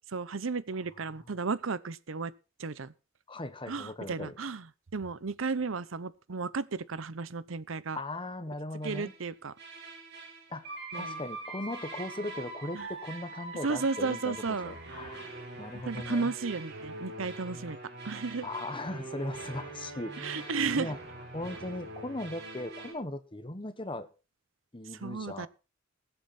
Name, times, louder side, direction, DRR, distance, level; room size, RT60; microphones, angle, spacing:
voice 1, 0.1-2.3 2.6-2.9 3.7-4.7 4.9-8.0 8.8-9.5 10.9-11.2 12.7-12.9 13.6-14.7 15.8-17.8 18.0-18.5 20.2-21.0 25.0-25.5, right 4 dB, 75° right, 0.8 m, -33 dB
voice 2, 3.3-4.3 7.9-9.1 10.5-15.3 15.6-16.3 18.4-21.0 21.3-24.1 24.7-25.5, left 1 dB, 25° left, 1.3 m, -38 dB
sound 1, 8.8-9.2 9.6-22.9, right 2 dB, 60° right, 4.4 m, -43 dB
20.5 x 8.1 x 4.3 m
head